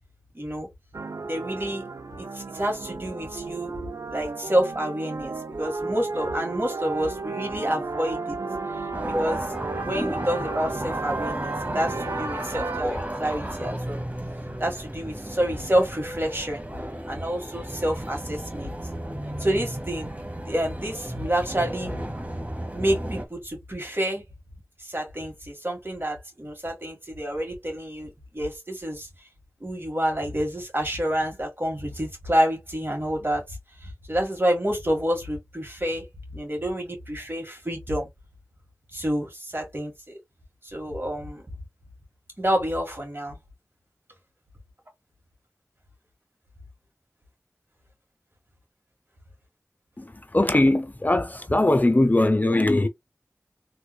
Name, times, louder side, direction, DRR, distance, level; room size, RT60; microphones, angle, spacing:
voice 1, 0.3-0.7 1.3-1.8 2.2-3.7 4.1-8.4 9.1-14.0 14.6-16.7 17.0-18.7 19.4-20.1 20.4-21.9 22.7-24.2 24.8-29.1 29.6-38.1 38.9-40.2 40.6-41.5 42.4-43.4, equal, 45° right, 1.8 m, -28 dB
sound 1, 0.9-12.8, right 3 dB, 80° right, 0.4 m, -33 dB
sound 2, 8.9-23.3, right 1 dB, 30° right, 1.0 m, -33 dB
voice 2, 50.0-52.9, left 1 dB, 30° left, 0.5 m, -21 dB
3.4 x 3.1 x 2.3 m
wide cardioid pair, 45°, 5 cm